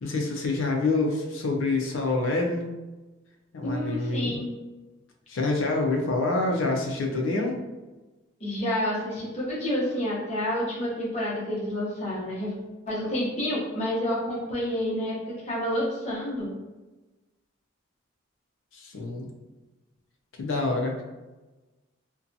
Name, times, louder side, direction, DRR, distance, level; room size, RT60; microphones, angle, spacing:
voice 1, 0.0-2.7 3.5-4.4 5.3-7.6 18.7-19.3 20.4-21.0, left 3 dB, 70° left, 1 dB, 0.4 m, -26 dB
voice 2, 3.6-4.5 8.4-12.5 12.9-15.1 15.4-16.5, left 1 dB, 30° left, -6 dB, 0.8 m, -29 dB
2.6 x 2.2 x 2.6 m, 1.1 s
head